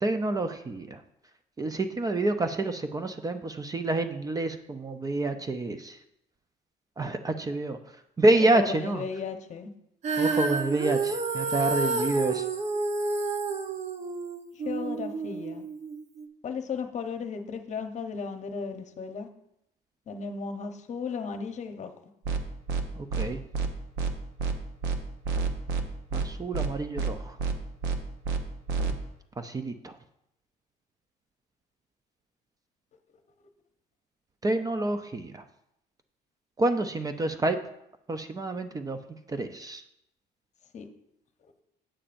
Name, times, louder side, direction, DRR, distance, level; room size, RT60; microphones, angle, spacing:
voice 1, 0.0-1.0 1.6-6.0 7.0-7.8 8.2-9.0 10.2-12.5 23.0-23.4 26.1-27.4 29.4-30.0 34.4-35.4 36.6-37.6 38.1-39.8, right 2 dB, 20° right, 8 dB, 0.5 m, -28 dB
voice 2, 8.4-9.7 14.6-15.6 16.4-19.3 20.1-21.9 40.7-40.9, left 5 dB, 45° left, 6 dB, 0.9 m, -35 dB
Female singing, 10.0-16.3, right 3 dB, 45° right, 0.9 m, -29 dB
sound 1, 22.2-22.4 22.7-22.8 23.1-23.3 23.5-23.7 24.0-24.1 24.4-24.5 24.8-25.0 25.2-25.8 26.1-26.3 26.5-26.7 27.0-27.1 27.4-27.5 27.8-28.0 28.2-28.4 28.7-28.9, right 5 dB, 90° right, 0.8 m, -28 dB
8.7 x 8.4 x 2.6 m, 0.80 s
cardioid pair, 110°, 17 cm